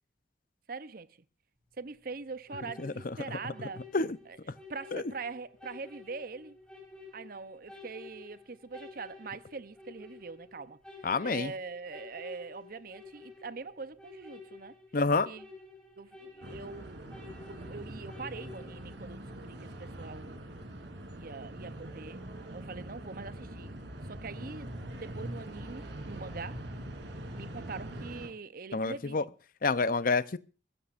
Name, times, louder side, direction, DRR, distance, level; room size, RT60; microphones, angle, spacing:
voice 1, 0.7-1.2 1.8-3.8 4.3-6.6 7.1-10.8 11.2-14.7 15.3-15.5 16.0-20.4 21.1-22.2 22.5-26.7 27.1-29.3, right 4 dB, 55° right, 0.8 m, -43 dB
sound 1, 2.5-18.9, left 3 dB, 5° left, 5.0 m, -51 dB
voice 2, 11.0-11.5 14.9-15.3 28.7-29.2 29.6-30.4, left 3 dB, 50° left, 0.7 m, -28 dB
sound 2, 16.4-28.3, right 1 dB, 75° right, 3.4 m, -43 dB
23.5 x 14.0 x 2.5 m
head